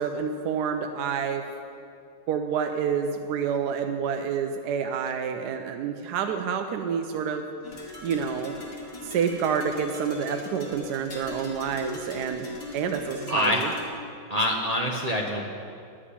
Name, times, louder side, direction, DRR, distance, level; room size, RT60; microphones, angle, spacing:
voice 1, 0.0-1.4 2.3-7.5 8.0-8.6 9.0-12.5 12.7-13.7, right 7 dB, 75° right, 6 dB, 1.1 m, -28 dB
sound 1, 7.6-13.9, left 2 dB, 50° left, 1.8 m, -39 dB
voice 2, 13.3-13.6 14.3-15.4, left 1 dB, 50° right, -1 dB, 0.4 m, -25 dB
11.5 x 5.0 x 8.3 m, 2.4 s
omnidirectional pair, 1.9 m